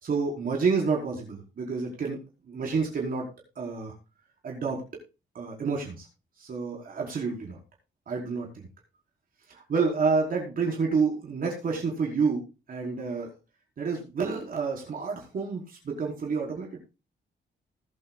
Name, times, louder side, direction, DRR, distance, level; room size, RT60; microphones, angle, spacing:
voice 1, 0.0-2.2 2.5-3.2 3.6-3.9 4.4-4.8 5.3-6.1 6.4-7.6 8.1-8.7 9.5-13.3 13.8-16.8, right 5 dB, 50° right, -1 dB, 4.6 m, -29 dB
19.5 x 8.7 x 2.4 m, 0.28 s
wide cardioid pair, 170°, 19 cm